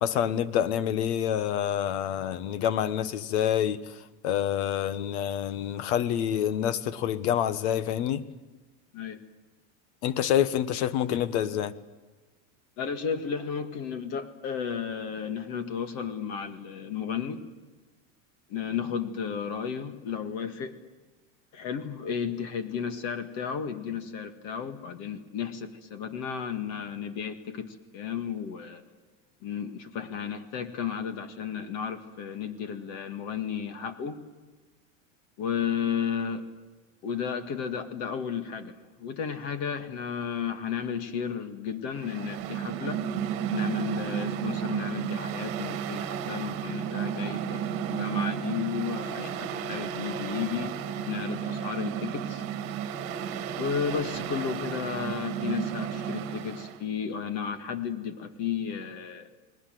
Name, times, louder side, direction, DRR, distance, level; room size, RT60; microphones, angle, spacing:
voice 1, 0.0-3.9 4.2-8.2 10.0-11.7, left 10 dB, 55° left, 1.4 m, -27 dB
voice 2, 12.8-17.4 18.5-20.7 21.5-28.8 29.4-34.2 35.4-36.4 37.0-43.0 43.5-50.7 51.0-52.5 53.6-59.3, left 7 dB, 40° left, 2.0 m, -33 dB
Mechanical fan, 41.9-56.8, right 8 dB, 35° right, 2.0 m, -33 dB
30.0 x 20.0 x 7.8 m
supercardioid pair, 170°, 40 cm